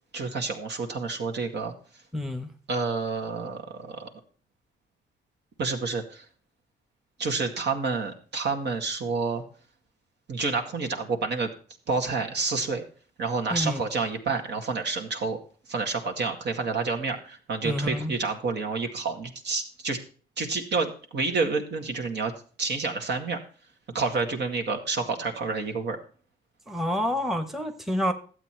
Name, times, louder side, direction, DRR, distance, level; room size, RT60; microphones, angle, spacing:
voice 1, 0.1-1.7 2.7-4.1 5.6-6.2 7.2-9.4 10.3-11.5 11.9-12.8 13.2-15.4 15.7-20.0 20.4-22.3 22.6-23.4 23.9-26.0, right 4 dB, 60° right, 4 dB, 2.0 m, -29 dB
voice 2, 2.1-2.5 13.5-13.8 17.6-18.1 26.7-28.1, left 1 dB, ahead, 7 dB, 1.1 m, -28 dB
12.0 x 8.3 x 4.5 m, 0.41 s
cardioid pair, 90°, 20 cm